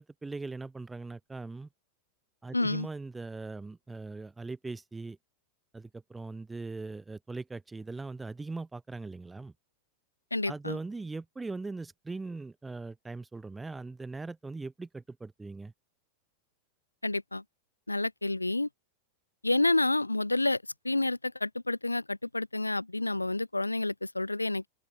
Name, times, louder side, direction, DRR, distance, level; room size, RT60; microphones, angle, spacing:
voice 1, 0.0-1.7 2.4-5.2 5.7-9.5 10.5-15.7, right 3 dB, 10° right, 1.1 m, -40 dB
voice 2, 2.5-2.9 10.3-10.8 17.0-17.4 17.9-18.7 19.4-20.6 20.8-24.7, left 2 dB, 85° left, 0.7 m, -29 dB
open air
figure-of-eight pair, 90°, 0 cm